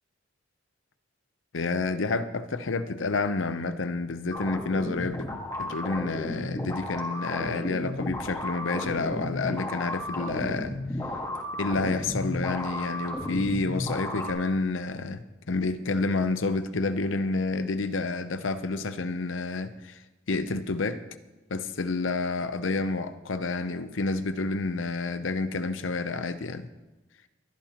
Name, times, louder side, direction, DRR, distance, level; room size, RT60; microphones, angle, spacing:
voice 1, 1.5-5.3 5.6-10.8 11.5-20.0 20.3-21.0 21.5-26.7, left 3 dB, 85° left, 0.7 m, -29 dB
sound 1, 4.3-14.3, left 1 dB, 20° left, 1.6 m, -34 dB
22.5 x 11.0 x 2.9 m
head